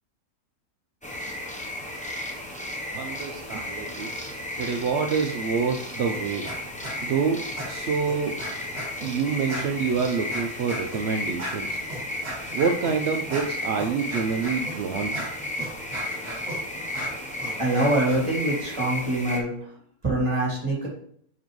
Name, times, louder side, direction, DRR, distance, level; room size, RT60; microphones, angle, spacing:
sound 1, 1.0-19.4, left 1 dB, 10° left, 0.3 m, -34 dB
voice 1, 2.9-4.1 4.6-6.5 7.0-8.5 9.0-11.8 12.5-15.2, right 5 dB, 65° right, 4 dB, 0.6 m, -27 dB
sound 2, 6.1-6.6 6.8-7.2 7.6-9.1 9.5-18.2, right 1 dB, 40° right, 2.2 m, -37 dB
voice 2, 17.6-19.5 20.0-20.9, right 1 dB, 20° right, -4 dB, 2.7 m, -24 dB
7.3 x 5.4 x 3.1 m, 0.65 s
omnidirectional pair, 1.7 m